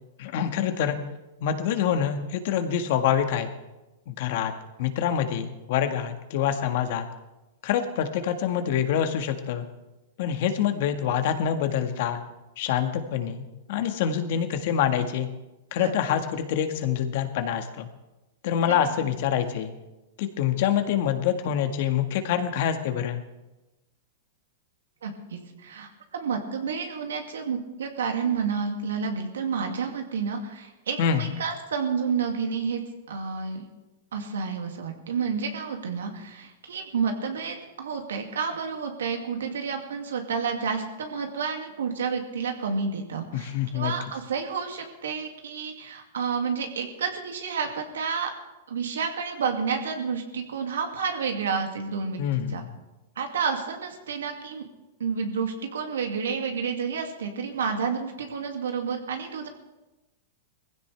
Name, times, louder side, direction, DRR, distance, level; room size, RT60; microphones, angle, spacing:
voice 1, 0.2-1.0 1.4-3.5 4.1-4.5 4.8-7.1 7.6-9.6 10.2-12.2 12.6-15.3 15.7-17.9 18.4-19.7 20.2-23.2 31.0-31.2 43.3-43.9 52.2-52.7, left 9 dB, 60° left, 7 dB, 1.6 m, -26 dB
voice 2, 15.8-16.2 18.6-18.8 25.0-32.8 33.1-33.6 34.1-48.3 48.7-52.2 52.5-52.6 53.2-54.6 55.0-59.5, right 6 dB, 85° right, 4 dB, 2.4 m, -30 dB
20.0 x 15.5 x 3.4 m, 1.0 s
hypercardioid pair, 130°, 0 cm